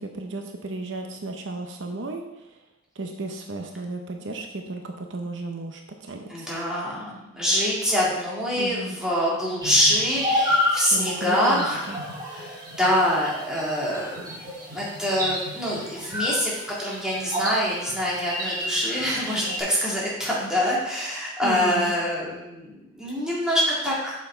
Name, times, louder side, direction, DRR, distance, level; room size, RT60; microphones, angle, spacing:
voice 1, 0.0-2.6 3.0-6.5 8.6-9.0 10.9-12.0 21.4-21.9, right 2 dB, 70° right, 4 dB, 0.7 m, -34 dB
voice 2, 6.3-11.9 12.3-14.2 14.7-24.1, equal, 5° right, -7 dB, 2.1 m, -25 dB
sound 1, 9.6-19.6, left 1 dB, 20° right, 2.0 m, -30 dB
7.0 x 5.8 x 4.4 m, 0.95 s
head